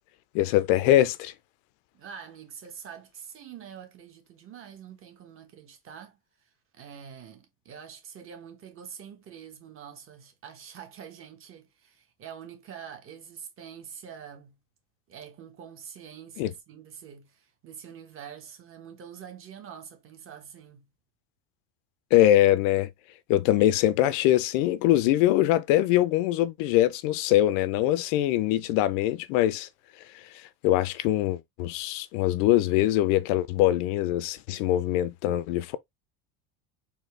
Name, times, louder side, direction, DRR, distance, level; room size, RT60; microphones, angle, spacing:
voice 1, 0.3-1.3 16.4-16.5 22.1-22.9 23.3-29.7 30.6-35.8, left 14 dB, 75° left, 0.6 m, -23 dB
voice 2, 1.9-14.6 15.1-20.9, right 8 dB, 35° right, 1.2 m, -45 dB
4.3 x 2.8 x 3.2 m
cardioid pair, 145°, 39 cm